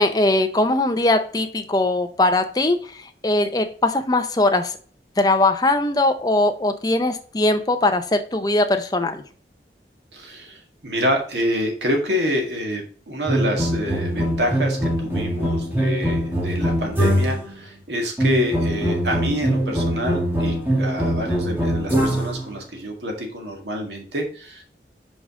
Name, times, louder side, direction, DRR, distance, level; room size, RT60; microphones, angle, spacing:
voice 1, 0.0-4.7 5.2-9.2, left 2 dB, 20° left, 7 dB, 0.6 m, -20 dB
voice 2, 10.1-24.6, equal, 80° right, 2 dB, 1.8 m, -27 dB
sound 1, 13.3-17.5 18.2-22.4, equal, 15° right, 1.4 m, -22 dB
5.3 x 5.1 x 3.6 m, 0.42 s
head